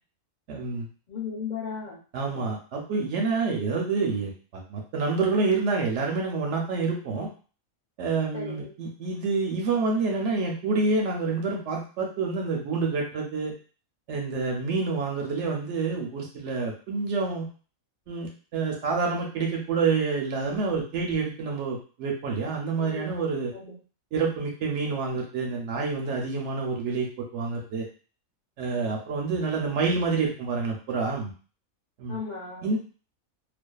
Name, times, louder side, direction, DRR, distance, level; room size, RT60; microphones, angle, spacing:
voice 1, 0.5-0.9 2.1-7.3 8.0-13.5 14.1-17.5 18.1-23.5 24.1-27.9 28.6-31.3 32.0-32.2 32.6-32.8, right 4 dB, 65° right, 1 dB, 0.8 m, -28 dB
voice 2, 1.1-2.0 2.3-2.4 3.6-3.8 8.3-8.7 22.8-23.1 23.5-23.7 32.1-32.7, left 5 dB, 90° left, -4 dB, 0.4 m, -36 dB
2.4 x 2.3 x 2.2 m, 0.38 s
omnidirectional pair, 1.5 m